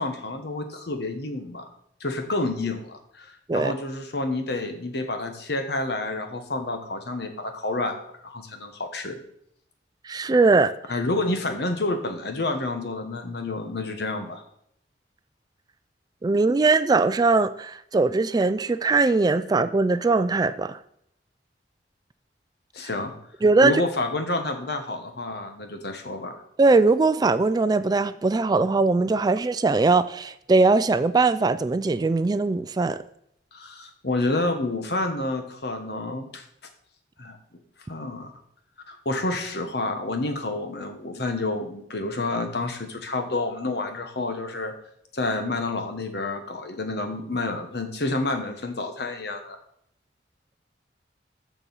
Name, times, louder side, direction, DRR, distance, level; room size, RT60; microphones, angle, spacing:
voice 1, 0.0-1.7 2.0-7.9 8.2-9.2 10.9-14.4 22.7-23.1 23.6-26.4 33.5-36.4 37.2-37.4 37.9-38.3 38.9-44.7 45.1-49.6, left 2 dB, 65° left, 6 dB, 1.3 m, -29 dB
voice 2, 10.0-10.7 16.2-20.8 23.4-23.8 26.6-33.0, right 3 dB, 20° right, 13 dB, 0.3 m, -20 dB
6.8 x 6.2 x 7.1 m, 0.73 s
head